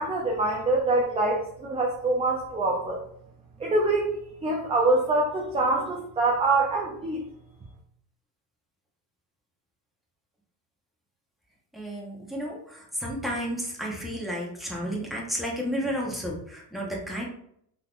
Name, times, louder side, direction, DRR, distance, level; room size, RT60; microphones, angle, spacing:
voice 1, 0.0-3.0 3.6-7.2, right 2 dB, 15° right, -1 dB, 0.4 m, -25 dB
voice 2, 11.7-17.2, equal, ahead, -3 dB, 0.9 m, -32 dB
3.6 x 2.8 x 2.4 m, 0.69 s
cardioid pair, 115°, 42 cm